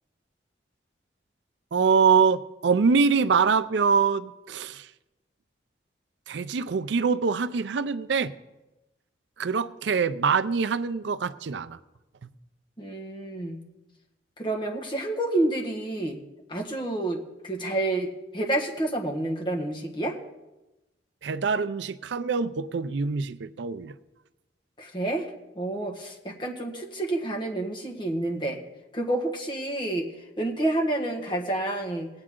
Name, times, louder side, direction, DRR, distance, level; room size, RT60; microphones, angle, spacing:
voice 1, 1.7-4.9 6.3-8.3 9.4-11.8 21.2-23.9, right 5 dB, 80° right, 13 dB, 0.5 m, -24 dB
voice 2, 12.8-13.6 14.4-16.2 16.5-18.1 18.3-20.2 24.8-28.6 28.9-30.1 30.4-32.1, right 1 dB, 25° left, 0 dB, 1.5 m, -29 dB
19.0 x 8.9 x 3.7 m, 1.0 s
head